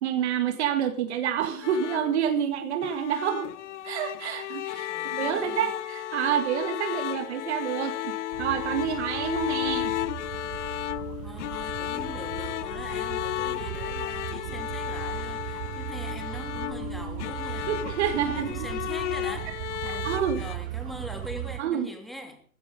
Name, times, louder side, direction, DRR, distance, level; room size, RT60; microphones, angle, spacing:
voice 1, 0.0-3.5 3.8-9.9 17.7-18.7 19.9-20.4 21.6-21.9, right 9 dB, 50° right, 7 dB, 2.0 m, -28 dB
sound 1, 1.6-20.6, left 13 dB, 55° left, 1.0 m, -33 dB
voice 2, 4.9-5.7 11.2-22.4, equal, ahead, 4 dB, 3.0 m, -42 dB
sound 2, 8.3-21.6, right 16 dB, 30° right, 0.7 m, -37 dB
15.5 x 15.5 x 5.2 m, 0.44 s
hypercardioid pair, 135°, 43 cm